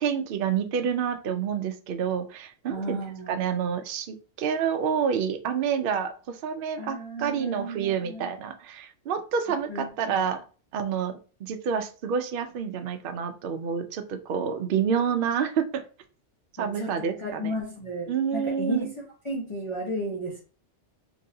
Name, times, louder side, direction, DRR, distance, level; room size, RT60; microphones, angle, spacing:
voice 1, 0.0-3.0 3.3-10.4 10.7-15.8 16.6-17.5 18.1-18.9, right 7 dB, 60° right, 7 dB, 0.6 m, -28 dB
voice 2, 2.7-3.4 6.8-8.3 9.7-10.3 16.6-18.9 19.2-20.4, equal, 30° left, -5 dB, 0.8 m, -33 dB
4.0 x 2.7 x 2.6 m, 0.37 s
omnidirectional pair, 1.2 m